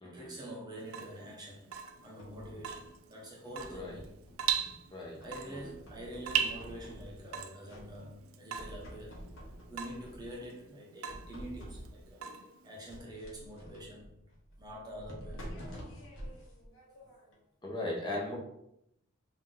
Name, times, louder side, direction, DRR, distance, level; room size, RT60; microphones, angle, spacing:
voice 1, 0.0-1.7 2.0-4.1 5.2-9.2 9.7-12.3 12.6-14.2 14.6-16.1, right 1 dB, 20° right, 0.8 m, -46 dB
Water tap faucet / Drip, 0.8-13.0, right 8 dB, 85° right, 0.4 m, -39 dB
sound 1, 1.7-2.9 3.5-4.8 5.2-7.4 7.7-8.2 8.5-10.5 11.0-12.1 12.9-17.4, equal, 70° left, 1.1 m, -49 dB
voice 2, 17.6-18.3, left 2 dB, 20° left, 0.9 m, -38 dB
3.4 x 2.8 x 3.8 m
head